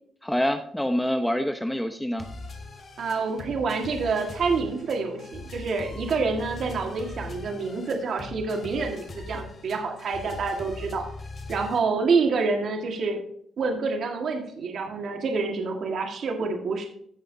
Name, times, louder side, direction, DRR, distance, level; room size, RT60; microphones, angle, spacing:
voice 1, 0.2-2.3, equal, 5° left, 7 dB, 0.8 m, -26 dB
sound 1, 2.2-11.8, left 3 dB, 35° left, 2.6 m, -40 dB
voice 2, 3.0-11.0 11.5-13.2 13.6-16.9, right 4 dB, 60° right, 2 dB, 1.7 m, -27 dB
15.5 x 5.6 x 2.7 m, 0.64 s
cardioid pair, 90°, 0 cm